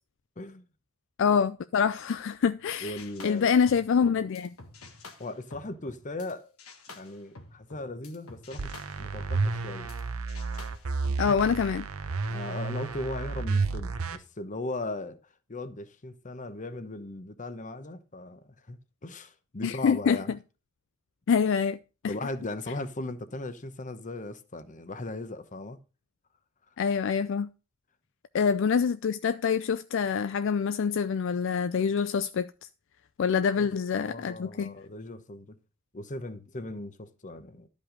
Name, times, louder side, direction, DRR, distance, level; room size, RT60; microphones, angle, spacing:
voice 1, 0.4-0.7 2.8-3.5 5.2-6.5 6.9-9.9 12.3-15.2 15.5-20.3 22.0-25.8 33.6-35.6 35.9-37.7, left 2 dB, 35° left, 0.9 m, -38 dB
voice 2, 1.2-4.5 11.2-11.9 19.6-20.2 21.3-21.8 22.0-22.1 26.8-27.5 28.3-32.5 33.2-34.8, left 6 dB, 60° left, 0.4 m, -26 dB
sound 1, 3.0-6.3 6.6-10.0 10.3-11.3, left 3 dB, 80° left, 1.6 m, -49 dB
sound 2, 8.6-14.2, right 4 dB, 85° right, 0.9 m, -31 dB
11.5 x 5.4 x 5.1 m
head